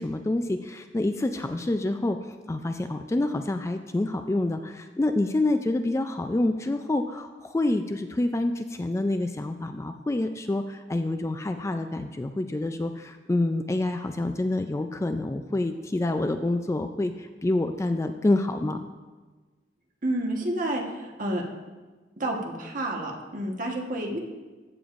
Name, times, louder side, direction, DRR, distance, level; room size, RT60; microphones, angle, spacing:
voice 1, 0.0-18.8, left 2 dB, 15° left, 7 dB, 0.3 m, -27 dB
voice 2, 20.0-21.4 22.2-24.2, right 1 dB, 50° right, 0 dB, 1.2 m, -29 dB
15.0 x 6.9 x 2.5 m, 1.3 s
head